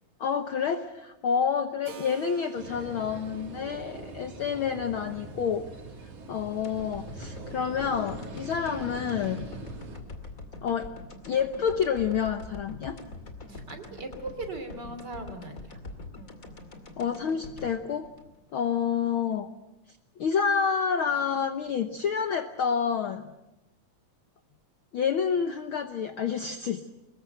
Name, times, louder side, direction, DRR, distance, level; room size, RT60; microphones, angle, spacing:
voice 1, 0.2-5.6 6.3-9.5 10.6-10.9 11.3-13.0 17.0-18.1 18.5-19.5 20.2-23.2 24.9-26.9, left 7 dB, 60° left, 8 dB, 1.4 m, -28 dB
Keyboard (musical), 1.8-10.5, right 7 dB, 55° right, 3.0 m, -53 dB
sound 1, 2.5-10.0, right 2 dB, 75° right, 4.6 m, -42 dB
sound 2, 6.6-18.9 19.2-19.3, left 2 dB, 30° left, 2.5 m, -44 dB
voice 2, 13.5-15.8, right 2 dB, 35° right, 7 dB, 3.3 m, -39 dB
24.5 x 21.0 x 7.9 m, 0.97 s
omnidirectional pair, 3.4 m